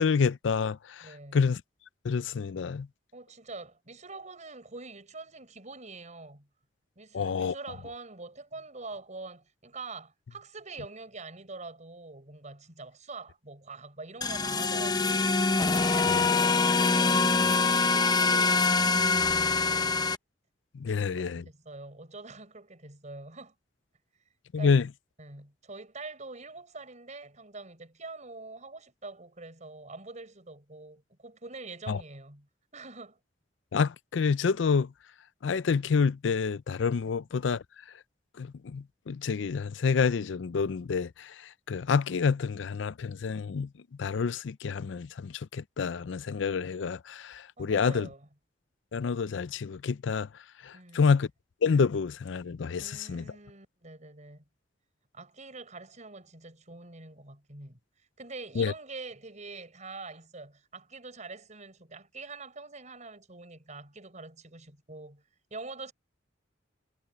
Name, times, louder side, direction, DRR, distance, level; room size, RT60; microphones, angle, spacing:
voice 1, 0.0-1.1 1.3-1.6 2.0-2.9 7.1-7.5 16.1-16.2 20.7-21.4 24.5-24.9 31.9-32.0 33.7-34.9 35.4-37.6 38.4-41.3 41.7-43.7 44.0-48.1 48.9-50.3 50.6-51.3 51.6-53.2 58.6-58.7, left 5 dB, 80° left, 0.5 m, -28 dB
voice 2, 1.0-1.4 3.1-6.5 7.0-15.4 15.7-20.1 20.9-23.5 24.6-24.7 25.2-33.2 37.0-37.1 47.6-48.3 50.7-51.2 52.8-54.4 55.1-57.8 58.2-65.2 65.5-65.9, right 3 dB, 40° right, 6.1 m, -45 dB
sound 1, 14.2-20.2, left 4 dB, 20° left, 0.8 m, -24 dB
head